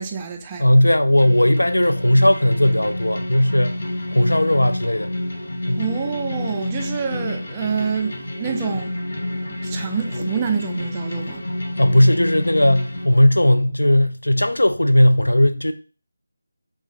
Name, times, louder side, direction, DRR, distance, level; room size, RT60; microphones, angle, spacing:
voice 1, 0.0-0.8 5.8-9.1 9.4-11.4, right 6 dB, 15° right, 0.3 m, -27 dB
voice 2, 0.6-3.8 4.1-5.1 5.7-5.8 11.8-15.7, left 1 dB, 70° left, 0.4 m, -17 dB
sound 1, 1.1-13.1, left 1 dB, 45° left, 0.9 m, -29 dB
3.4 x 2.3 x 4.3 m
figure-of-eight pair, 160°, 0 cm